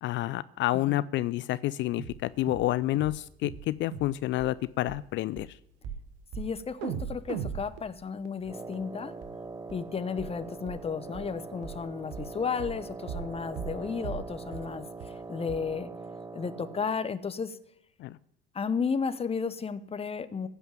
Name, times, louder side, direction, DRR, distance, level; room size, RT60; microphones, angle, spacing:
voice 1, 0.0-5.6 18.0-18.2, left 15 dB, 40° left, 17 dB, 0.4 m, -29 dB
sound 1, 2.0-2.2 2.5-2.7 2.9-3.2 3.4-3.7 3.9-4.1 4.4-4.5 4.9-5.0 5.4-5.5 5.8-6.0 6.3-6.5 6.8-8.8 9.2-9.3 9.7-9.8 10.2-10.3 10.7-10.8 11.1-11.3 11.6-11.8 12.1-12.3 12.6-12.8 13.1-13.3 13.6-13.8 14.0-14.3 14.5-14.7 15.0-15.1 15.5-15.6, right 7 dB, 55° right, 1.3 m, -38 dB
voice 2, 6.3-9.1 9.7-15.9 16.3-17.6 18.5-20.5, left 5 dB, 20° left, 12 dB, 0.9 m, -33 dB
Wind instrument woodwind instrument, 8.4-17.0, right 3 dB, 10° right, 0.5 m, -42 dB
15.5 x 5.6 x 9.1 m, 0.75 s
figure-of-eight pair, 65°, 31 cm